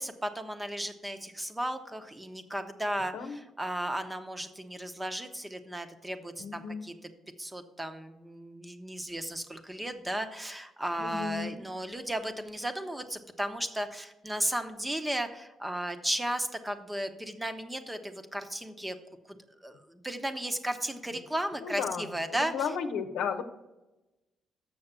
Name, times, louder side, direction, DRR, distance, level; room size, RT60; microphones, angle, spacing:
voice 1, 0.0-6.9 7.4-19.0 19.3-19.4 19.6-22.5, right 1 dB, 10° right, 8 dB, 0.9 m, -35 dB
voice 2, 6.4-6.8 11.0-11.6 21.6-22.1 22.5-23.4, left 6 dB, 85° left, 7 dB, 0.9 m, -33 dB
7.0 x 6.3 x 6.7 m, 1.0 s
cardioid pair, 90°, 0 cm